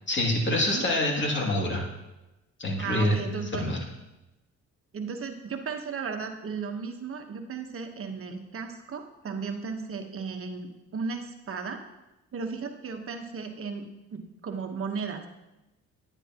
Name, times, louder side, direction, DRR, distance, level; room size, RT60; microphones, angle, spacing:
voice 1, 0.1-1.8 2.6-3.8, left 1 dB, 40° left, -1 dB, 2.4 m, -26 dB
voice 2, 2.8-3.7 4.9-11.8 12.3-15.3, right 5 dB, 45° right, 5 dB, 1.2 m, -35 dB
10.0 x 9.8 x 2.9 m, 0.99 s
cardioid pair, 90°, 30 cm